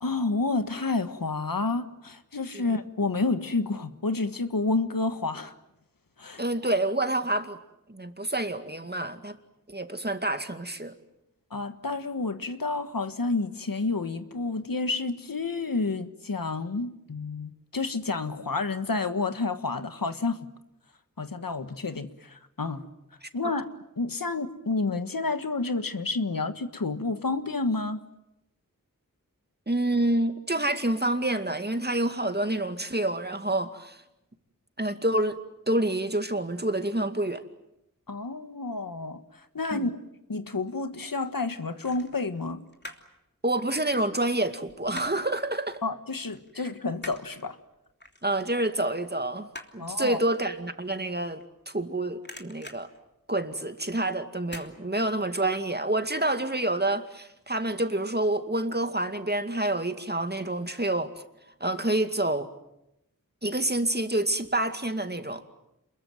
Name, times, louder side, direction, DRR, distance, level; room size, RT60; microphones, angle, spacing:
voice 1, 0.0-5.5 6.2-6.4 11.5-20.4 21.2-22.8 23.3-23.7 24.0-28.0 38.1-40.0 40.3-42.6 45.8-47.6 49.8-50.2, left 3 dB, 90° left, 1.6 m, -30 dB
voice 2, 6.4-7.6 7.9-9.4 9.7-10.9 23.4-23.5 29.7-34.0 34.8-35.4 35.7-37.4 39.7-39.9 43.4-45.8 48.2-52.9 53.3-61.1 61.6-62.5 63.4-65.4, right 1 dB, 30° right, 2.3 m, -28 dB
sound 1, 40.3-41.0 41.8-43.2 43.5-45.3 45.7-45.9 46.2-51.9 52.1-53.8 54.4-54.7 55.1-55.2, left 1 dB, 30° left, 3.1 m, -46 dB
28.0 x 22.0 x 9.2 m
wide cardioid pair, 45°, 33 cm